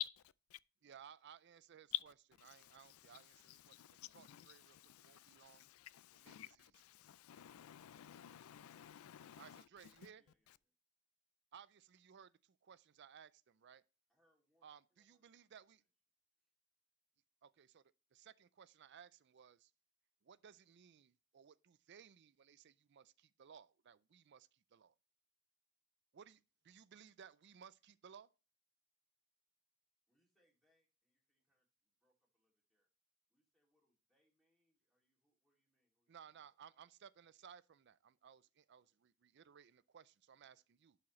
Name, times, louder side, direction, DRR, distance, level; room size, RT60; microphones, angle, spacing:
voice 1, 0.8-2.1 2.4-5.7 6.1-6.8 9.4-10.2 11.5-13.8 14.6-15.8 17.4-17.8 18.1-19.7 20.2-24.9 26.1-28.3 36.1-41.0, right 7 dB, 55° right, 0.4 m, -61 dB
voice 2, 3.7-9.6, left 10 dB, 90° left, 0.4 m, -58 dB
voice 3, 10.1-10.7 14.1-15.9 30.1-32.9 33.3-36.8 38.7-39.0 40.4-40.7, equal, ahead, 2.5 m, -84 dB
11.0 x 4.9 x 3.1 m
head